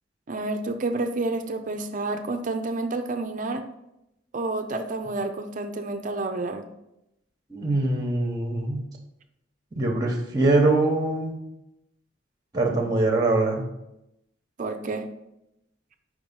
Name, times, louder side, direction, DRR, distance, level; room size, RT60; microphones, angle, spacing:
voice 1, 0.3-3.7 4.3-6.7 14.6-15.1, right 2 dB, 45° right, 7 dB, 0.5 m, -29 dB
voice 2, 7.5-8.8 9.7-11.4 12.5-13.7, right 2 dB, 20° right, 2 dB, 1.0 m, -23 dB
5.1 x 4.7 x 5.5 m, 0.86 s
head